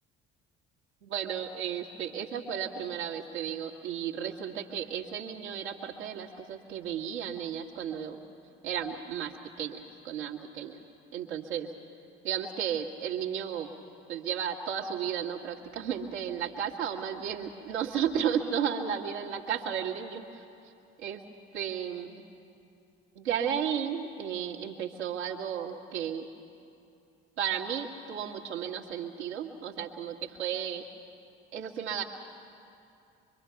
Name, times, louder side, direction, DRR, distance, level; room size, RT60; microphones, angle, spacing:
voice 1, 1.0-8.2 8.6-9.3 9.6-10.8 11.1-11.7 12.2-13.7 14.1-20.4 21.0-21.2 21.5-22.3 23.2-26.3 27.4-30.9 31.5-32.0, right 8 dB, 75° right, -1 dB, 1.8 m, -33 dB
25.0 x 23.5 x 5.8 m, 2.6 s
figure-of-eight pair, 55°, 33 cm